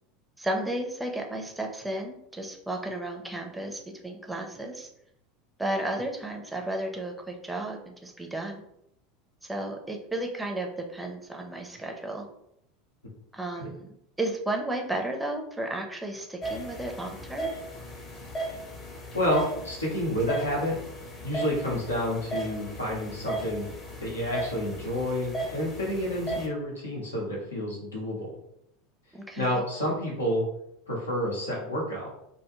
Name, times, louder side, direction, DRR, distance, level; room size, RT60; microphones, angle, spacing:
voice 1, 0.4-4.9 5.6-8.6 9.4-12.3 13.3-17.5 29.1-29.6, right 1 dB, 10° right, 2 dB, 0.5 m, -33 dB
sound 1, 16.4-26.5, right 1 dB, 30° left, 0.7 m, -36 dB
voice 2, 19.1-20.7 21.2-23.6 24.0-28.4 29.4-30.4 30.9-32.1, left 1 dB, 90° left, -3 dB, 0.7 m, -29 dB
2.2 x 2.1 x 2.9 m, 0.77 s
hypercardioid pair, 80°, 0 cm